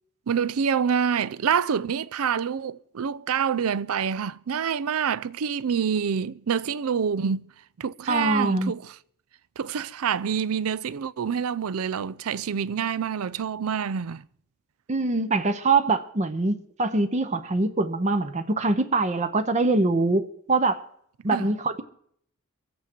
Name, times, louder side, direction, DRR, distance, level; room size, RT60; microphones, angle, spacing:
voice 1, 0.3-7.5 7.8-9.0 9.6-14.2 21.3-21.5, right 7 dB, 85° right, 0.5 m, -27 dB
voice 2, 8.1-8.7 14.9-20.8 21.2-21.8, right 3 dB, 35° right, 0.7 m, -23 dB
24.0 x 8.2 x 4.5 m
head